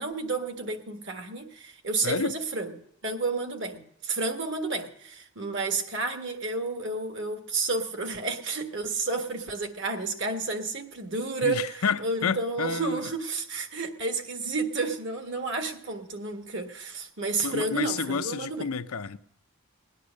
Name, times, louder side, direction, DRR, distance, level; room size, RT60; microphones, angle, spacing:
voice 1, 0.0-2.7 3.0-18.7, right 3 dB, 55° right, 1.6 m, -31 dB
voice 2, 2.0-2.4 11.4-13.0 17.4-19.2, left 6 dB, 80° left, 0.6 m, -30 dB
18.5 x 10.0 x 6.4 m
head